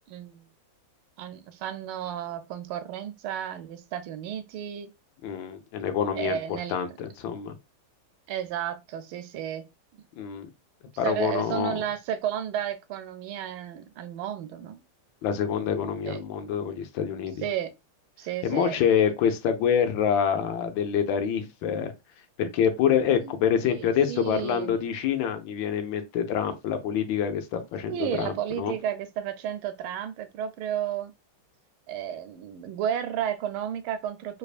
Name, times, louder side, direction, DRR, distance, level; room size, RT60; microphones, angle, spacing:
voice 1, 0.1-0.5 1.2-4.9 6.2-6.8 8.3-9.7 9.9-10.0 11.0-14.8 16.1-16.2 17.4-17.7 18.2-18.8 23.1-23.3 23.6-24.8 27.9-31.1 31.9-34.4, right 10 dB, 85° right, 1.5 m, -32 dB
voice 2, 5.2-6.4 6.7-7.6 10.2-10.5 11.0-11.8 15.2-17.4 18.4-21.9 22.4-28.7, left 8 dB, 75° left, 1.3 m, -26 dB
3.3 x 3.3 x 2.4 m
omnidirectional pair, 2.3 m